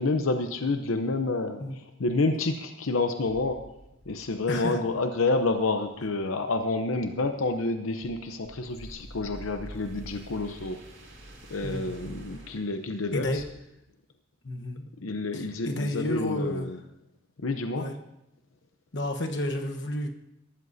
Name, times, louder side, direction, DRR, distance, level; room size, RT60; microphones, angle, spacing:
voice 1, 0.0-3.6 4.1-10.8 11.5-13.4 15.0-16.8 17.4-17.9, left 3 dB, 90° left, 7 dB, 0.8 m, -29 dB
sound 1, 3.2-13.5, equal, 75° right, 6.0 m, -48 dB
voice 2, 4.5-4.8 11.6-12.0 13.1-13.4 14.4-16.7 17.8-17.9 18.9-20.1, left 1 dB, 60° left, 4 dB, 1.2 m, -31 dB
21.5 x 13.0 x 2.7 m, 0.86 s
head